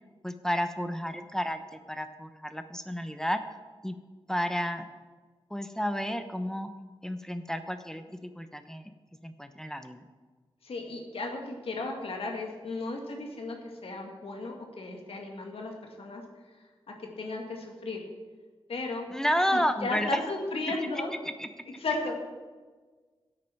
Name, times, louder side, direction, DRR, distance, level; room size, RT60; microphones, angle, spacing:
voice 1, 0.2-3.4 3.8-3.9 4.3-4.9 5.5-6.7 7.0-8.9 9.2-10.0 19.1-20.2 21.4-21.5, equal, 5° left, 8 dB, 0.8 m, -31 dB
voice 2, 10.6-18.0 18.7-19.1 19.5-21.1 21.7-22.1, left 2 dB, 75° left, 1 dB, 2.3 m, -35 dB
16.0 x 8.7 x 4.6 m, 1.4 s
wide cardioid pair, 75°, 10 cm